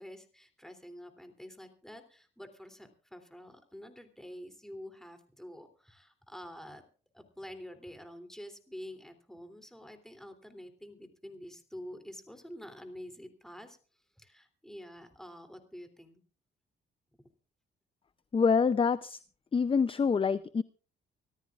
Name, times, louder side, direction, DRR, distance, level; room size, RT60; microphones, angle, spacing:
voice 1, 0.0-6.8 7.1-13.8 14.2-16.2, equal, ahead, 7 dB, 3.0 m, -48 dB
voice 2, 18.3-19.2 19.5-20.6, left 5 dB, 25° left, 14 dB, 0.6 m, -26 dB
25.0 x 14.0 x 2.5 m, 0.39 s
cardioid pair, 90°, 20 cm